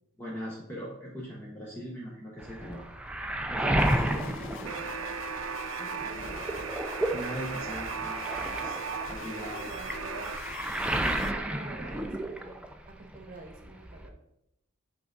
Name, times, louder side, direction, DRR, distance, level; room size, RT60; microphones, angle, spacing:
voice 1, 0.2-2.8 3.5-4.3 7.1-8.8 9.1-9.7, equal, 10° left, -5 dB, 0.9 m, -39 dB
Waves surf, 2.4-5.6 6.0-12.9 13.1-14.1, right 1 dB, 5° right, 0.4 m, -32 dB
sound 1, 3.8-11.3, left 4 dB, 65° left, 0.4 m, -44 dB
voice 2, 4.0-4.9 5.8-6.4 9.4-10.3 11.1-12.6 12.9-14.1, right 2 dB, 40° right, 3 dB, 1.1 m, -47 dB
Alarm, 4.6-10.4, right 6 dB, 85° right, 0.5 m, -37 dB
7.7 x 3.5 x 3.9 m, 0.83 s
head